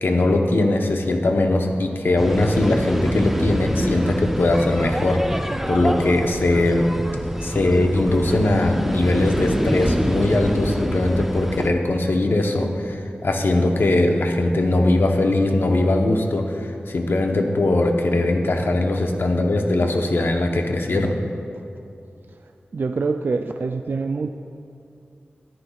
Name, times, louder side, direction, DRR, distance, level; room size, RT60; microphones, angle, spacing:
voice 1, 0.0-6.9 7.4-21.2, left 2 dB, 75° left, 3 dB, 0.9 m, -20 dB
sound 1, 2.2-11.7, equal, 5° right, 0.6 m, -25 dB
voice 2, 22.7-24.3, right 4 dB, 60° right, 5 dB, 0.3 m, -25 dB
13.5 x 11.5 x 2.4 m, 2.5 s
wide cardioid pair, 60°, 4 cm